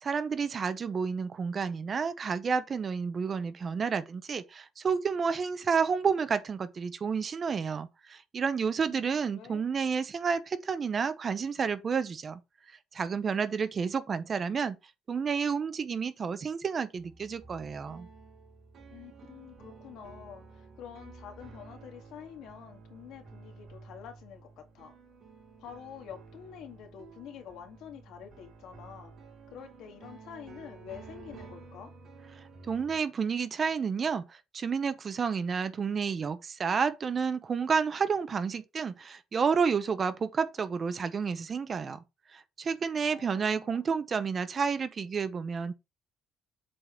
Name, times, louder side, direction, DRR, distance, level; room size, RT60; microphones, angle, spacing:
voice 1, 0.0-12.4 12.9-14.8 15.1-18.1 32.7-42.0 42.3-45.7, right 6 dB, 30° right, 0.7 m, -30 dB
voice 2, 8.8-9.6 18.9-24.9 25.6-29.1 29.5-31.9 43.0-43.9, left 8 dB, 75° left, 2.0 m, -47 dB
sound 1, 16.9-33.0, right 4 dB, 45° right, 4.1 m, -52 dB
7.7 x 3.9 x 4.5 m
cardioid pair, 165°, 0 cm